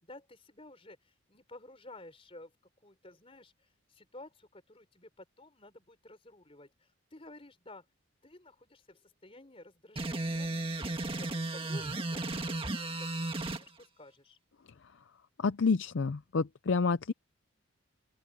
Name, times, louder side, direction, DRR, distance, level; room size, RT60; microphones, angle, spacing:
voice 1, 0.0-2.5 2.8-7.9 8.2-14.4, left 2 dB, 25° left, 4.1 m, -53 dB
sound 1, 10.0-13.6, right 2 dB, 25° right, 1.9 m, -34 dB
voice 2, 15.4-17.1, left 4 dB, 60° left, 0.5 m, -29 dB
open air
head